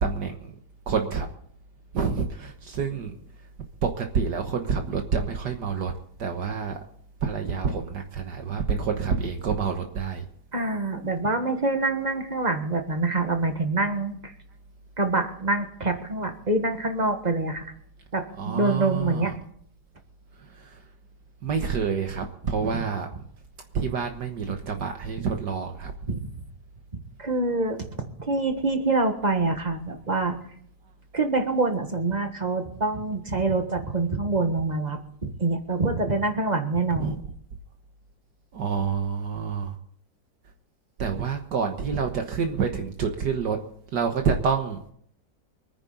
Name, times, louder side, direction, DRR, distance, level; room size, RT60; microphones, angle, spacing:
voice 1, 0.0-0.5 0.9-1.3 1.9-3.1 3.8-5.9 6.2-6.8 7.2-10.3 18.4-19.3 20.4-20.8 21.4-23.1 23.7-25.9 37.0-37.2 38.5-39.8 41.0-43.6 43.9-44.8, right 6 dB, 70° right, 4 dB, 1.8 m, -28 dB
voice 2, 10.5-14.3 15.0-17.7 18.1-19.3 26.1-26.3 27.2-27.8 28.2-30.4 31.1-37.2, right 3 dB, 25° right, 6 dB, 1.5 m, -26 dB
25.0 x 9.8 x 4.0 m, 0.64 s
omnidirectional pair, 2.0 m